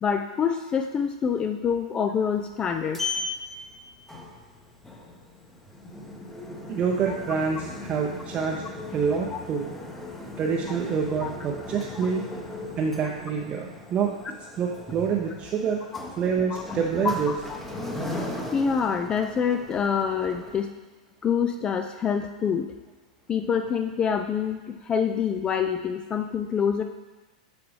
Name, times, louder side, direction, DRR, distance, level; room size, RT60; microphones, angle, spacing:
voice 1, 0.0-3.0 7.1-7.2 9.3-9.4 11.2-11.3 16.5-16.6 17.0-17.6 18.5-20.7 21.2-22.7 23.3-26.8, left 7 dB, 20° left, 7 dB, 0.4 m, -26 dB
Sliding door, 2.3-20.6, left 2 dB, 5° left, 0.9 m, -38 dB
voice 2, 6.7-8.6 8.9-9.8 10.4-12.3 12.8-14.1 14.6-15.9 16.2-17.3, right 6 dB, 30° right, -1 dB, 0.7 m, -27 dB
8.4 x 5.8 x 3.2 m, 1.2 s
figure-of-eight pair, 95°, 4 cm